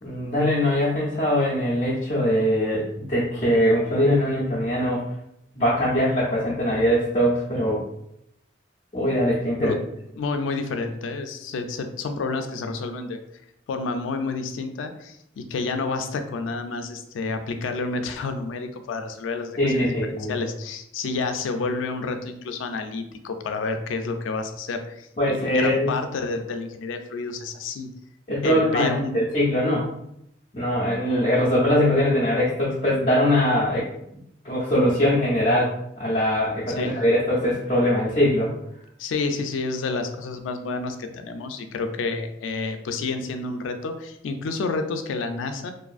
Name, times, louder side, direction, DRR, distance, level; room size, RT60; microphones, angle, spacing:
voice 1, 0.0-5.1 5.5-7.8 8.9-9.8 19.6-20.4 25.2-25.9 28.3-29.9 30.5-33.9 34.4-38.5, equal, 35° left, -8 dB, 0.5 m, -22 dB
voice 2, 10.2-13.2 13.7-19.9 20.3-27.9 28.4-29.2 36.7-36.9 39.0-45.7, left 3 dB, 90° left, 7 dB, 0.3 m, -29 dB
2.5 x 2.4 x 2.4 m, 0.79 s
head